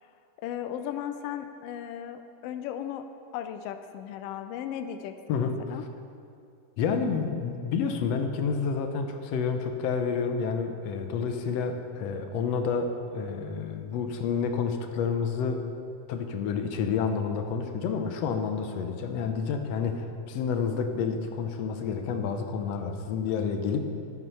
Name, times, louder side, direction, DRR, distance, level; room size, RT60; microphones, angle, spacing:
voice 1, 0.4-3.0 3.3-5.8, left 10 dB, 90° left, 8 dB, 1.3 m, -36 dB
voice 2, 6.8-15.6 16.1-23.8, left 6 dB, 70° left, 6 dB, 1.7 m, -29 dB
12.0 x 8.3 x 5.5 m, 2.5 s
omnidirectional pair, 3.4 m